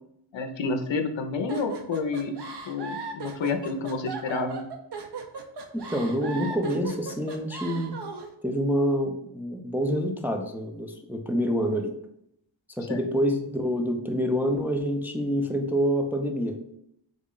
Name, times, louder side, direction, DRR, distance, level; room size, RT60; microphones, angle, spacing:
voice 1, 0.3-2.4 2.7-4.7 12.9-13.0, left 4 dB, 65° left, 7 dB, 0.5 m, -29 dB
sound 1, 1.5-8.3, right 4 dB, 55° right, 0.6 m, -37 dB
voice 2, 5.7-8.0 8.4-11.9 12.8-16.6, equal, 5° right, 3 dB, 0.4 m, -27 dB
3.7 x 2.1 x 3.7 m, 0.74 s
wide cardioid pair, 55°, 48 cm